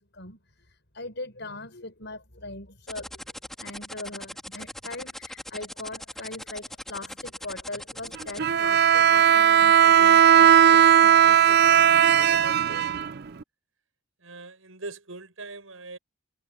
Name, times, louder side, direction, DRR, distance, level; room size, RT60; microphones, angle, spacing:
voice 1, 0.0-3.2 3.6-12.8, left 2 dB, 55° left, 7.2 m, -40 dB
sound 1, 2.9-8.4, equal, ahead, 3.9 m, -39 dB
Bowed string instrument, 8.4-13.4, right 9 dB, 50° right, 0.5 m, -17 dB
voice 2, 14.2-16.0, right 3 dB, 85° right, 6.4 m, -41 dB
head